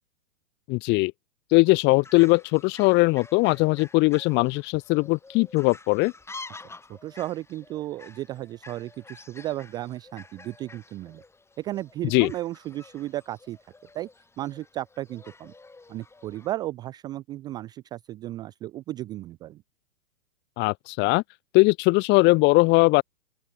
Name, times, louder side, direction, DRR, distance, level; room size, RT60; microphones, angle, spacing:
voice 1, 0.7-1.1 1.5-6.1 12.1-12.3 20.6-21.2 21.5-23.0, left 25 dB, 25° left, 1.0 m, -20 dB
Fowl, 1.6-16.5, left 3 dB, 5° left, 3.9 m, -49 dB
voice 2, 6.9-11.2 11.6-13.6 13.9-14.1 14.4-15.5 15.9-19.6, right 15 dB, 10° right, 0.5 m, -34 dB
open air
hypercardioid pair, 135°, 43 cm